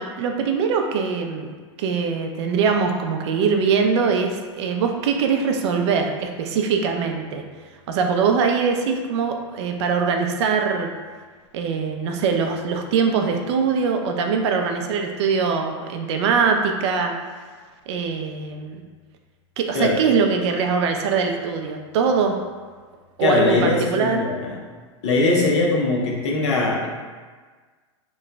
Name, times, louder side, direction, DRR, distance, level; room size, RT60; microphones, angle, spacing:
voice 1, 0.0-7.4 7.9-10.9 11.5-17.1 17.9-18.8 19.6-22.4 23.2-24.3, right 5 dB, 60° right, 3 dB, 0.5 m, -22 dB
voice 2, 23.2-24.6 25.0-26.9, left 3 dB, 65° left, -2 dB, 0.9 m, -21 dB
3.0 x 2.2 x 3.8 m, 1.5 s
supercardioid pair, 145°, 16 cm